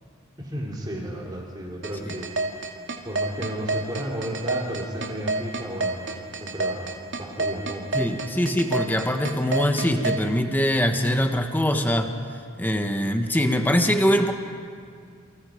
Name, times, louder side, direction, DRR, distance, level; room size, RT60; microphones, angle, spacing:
voice 1, 0.4-2.3 3.0-6.0 6.4-8.0 8.3-8.4, equal, 20° right, -2 dB, 3.0 m, -33 dB
sound 1, 1.8-10.2, right 3 dB, 55° right, 2.5 m, -27 dB
voice 2, 7.9-12.1 12.6-14.3, equal, 10° left, 5 dB, 1.2 m, -22 dB
29.0 x 26.0 x 5.1 m, 2.2 s
head